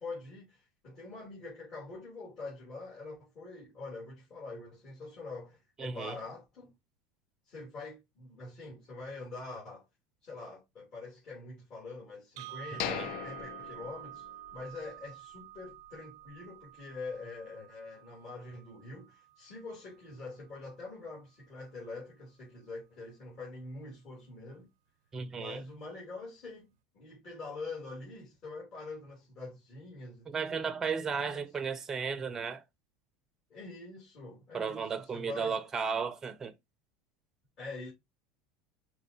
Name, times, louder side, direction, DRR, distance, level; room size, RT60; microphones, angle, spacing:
voice 1, 0.0-6.7 7.4-9.8 10.2-24.7 25.3-30.7 31.2-31.3 33.5-35.6 37.6-37.9, left 3 dB, 45° left, 3.0 m, -45 dB
voice 2, 5.8-6.1 12.9-13.1 25.1-25.6 30.3-32.6 34.5-36.5, right 6 dB, 20° right, 0.5 m, -34 dB
sound 1, 12.4-20.4, right 15 dB, 85° right, 0.5 m, -50 dB
sound 2, 12.8-14.7 15.0-15.1 15.7-15.8, left 11 dB, 60° left, 0.4 m, -39 dB
5.3 x 2.9 x 2.7 m
supercardioid pair, 115°, 2 cm